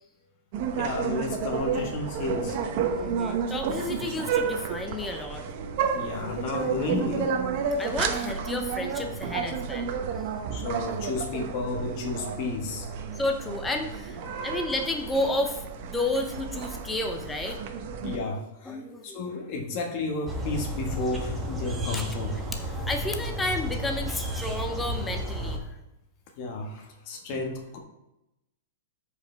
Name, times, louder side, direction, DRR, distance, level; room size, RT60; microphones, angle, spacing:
sound 1, 0.5-18.2, right 6 dB, 40° right, 0.9 m, -31 dB
voice 1, 0.8-2.6 5.9-7.3 10.5-12.9 14.4-14.6 18.0-18.8 19.0-22.3 26.4-27.8, left 3 dB, 35° left, 2 dB, 1.5 m, -32 dB
voice 2, 3.0-5.4 7.8-9.9 13.1-17.6 18.7-19.3 21.9-22.0 22.6-25.6, left 2 dB, 5° left, 4 dB, 0.7 m, -31 dB
sound 2, 20.3-25.6, equal, 10° right, 1.1 m, -32 dB
13.5 x 5.0 x 3.4 m, 0.91 s
supercardioid pair, 165°, 0 cm